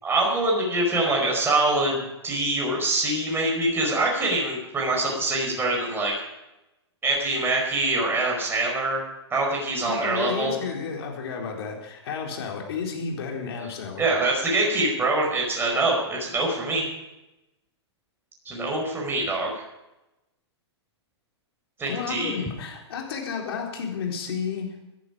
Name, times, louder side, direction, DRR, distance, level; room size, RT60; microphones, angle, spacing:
voice 1, 0.0-6.1 7.0-9.0 9.3-10.5 14.0-16.9 18.4-19.6 21.8-22.3, right 2 dB, 15° right, -2 dB, 5.1 m, -24 dB
voice 2, 9.8-14.0 21.9-24.7, left 6 dB, 60° left, 0 dB, 4.2 m, -32 dB
18.0 x 11.5 x 5.0 m, 0.95 s
hypercardioid pair, 120°, 15 cm